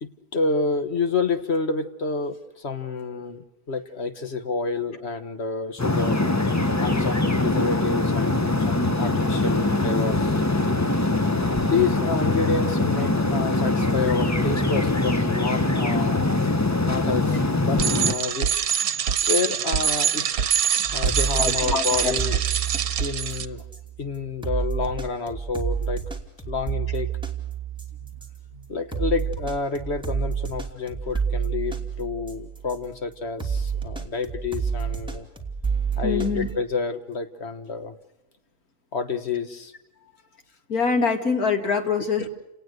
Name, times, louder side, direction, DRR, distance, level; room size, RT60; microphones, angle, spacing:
voice 1, 0.0-6.2 6.8-10.4 11.5-16.3 16.8-18.5 19.3-20.2 20.8-22.4 23.0-23.6 24.0-26.0 26.5-27.1 28.7-35.3 36.0-38.0 38.9-39.7 42.2-42.3, left 4 dB, 45° left, 9 dB, 1.5 m, -29 dB
sound 1, 5.8-18.1, left 2 dB, 15° left, 0.8 m, -23 dB
Bicycle, 17.8-23.4, right 8 dB, 70° right, 1.4 m, -24 dB
sound 2, 20.8-32.9 33.4-36.6, right 7 dB, 5° right, 2.6 m, -30 dB
voice 2, 21.4-22.4 28.5-28.6 36.0-36.5 40.7-42.3, left 5 dB, 70° left, 5 dB, 3.0 m, -25 dB
30.0 x 19.0 x 6.5 m, 1.0 s
omnidirectional pair, 1.6 m